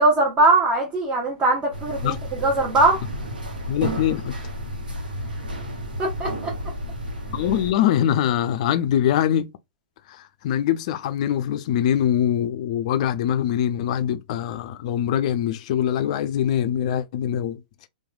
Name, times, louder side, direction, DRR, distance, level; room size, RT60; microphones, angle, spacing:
voice 1, 0.0-2.2 2.4-3.0 6.0-6.5, right 2 dB, 25° right, 0.8 m, -20 dB
sound 1, 1.7-7.7, equal, 80° right, 0.9 m, -32 dB
voice 2, 3.7-4.3 7.3-9.5 10.1-17.6, left 10 dB, 50° left, 0.3 m, -23 dB
3.0 x 2.2 x 2.3 m
figure-of-eight pair, 110°, 5 cm